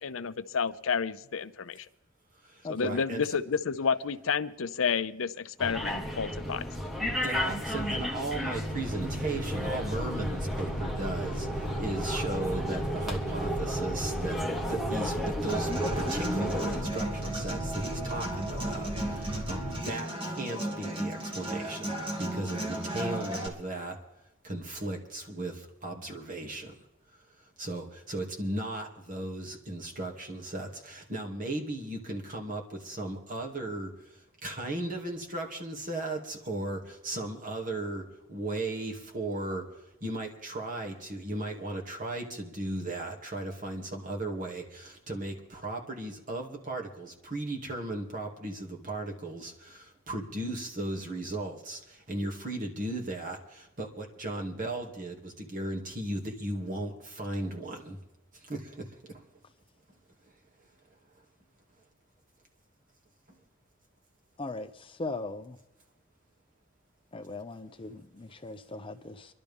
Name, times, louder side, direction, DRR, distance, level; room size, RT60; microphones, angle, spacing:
voice 1, 0.0-1.9 2.7-6.6, left 6 dB, 75° left, 13 dB, 0.6 m, -30 dB
voice 2, 2.4-3.4 7.2-15.7 16.0-24.0 24.4-26.7 27.4-58.0 58.3-59.2, right 2 dB, 40° right, 1 dB, 2.4 m, -36 dB
sound 1, 5.6-16.8, equal, ahead, 1.5 m, -33 dB
sound 2, 8.7-19.8, right 1 dB, 85° right, 5.4 m, -37 dB
Human voice / Acoustic guitar, 15.5-23.5, right 1 dB, 25° right, 2.2 m, -35 dB
voice 3, 65.0-65.6 67.1-69.3, left 2 dB, 25° left, 8 dB, 0.6 m, -38 dB
24.5 x 12.0 x 3.6 m, 0.87 s
head